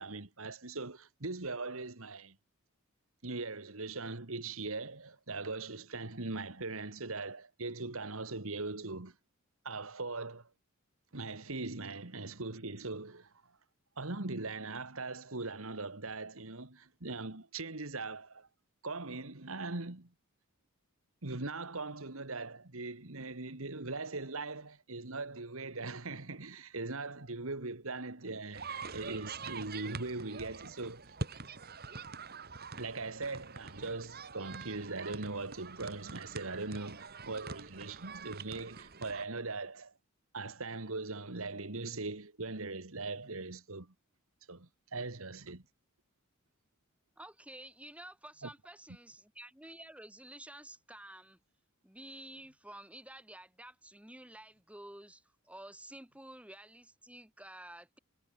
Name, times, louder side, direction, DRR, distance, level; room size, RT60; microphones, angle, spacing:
voice 1, 0.0-2.4 3.2-9.1 9.6-10.5 11.1-13.3 14.0-18.5 18.8-20.1 21.2-31.0 32.8-39.9 40.3-43.9 44.5-45.6 48.4-48.5, right 3 dB, 75° right, 2.1 m, -40 dB
sound 1, 28.5-39.2, right 4 dB, 45° right, 2.6 m, -45 dB
voice 2, 47.2-51.4 51.8-58.0, right 1 dB, 5° right, 3.7 m, -51 dB
head